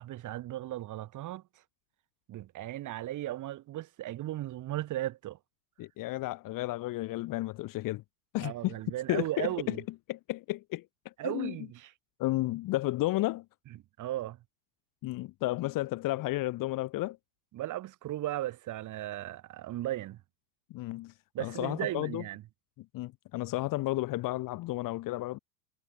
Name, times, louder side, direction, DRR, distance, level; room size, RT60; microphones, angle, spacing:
voice 1, 0.0-1.4 2.3-5.4 8.4-9.8 11.2-11.9 14.0-14.4 17.5-20.2 21.3-22.4, right 14 dB, 40° right, 7.8 m, -36 dB
voice 2, 5.8-8.0 8.3-8.8 9.1-9.8 10.1-11.5 12.2-13.4 15.0-17.2 20.7-22.2 22.9-25.4, left 18 dB, 40° left, 4.8 m, -33 dB
hypercardioid pair, 110°, 48 cm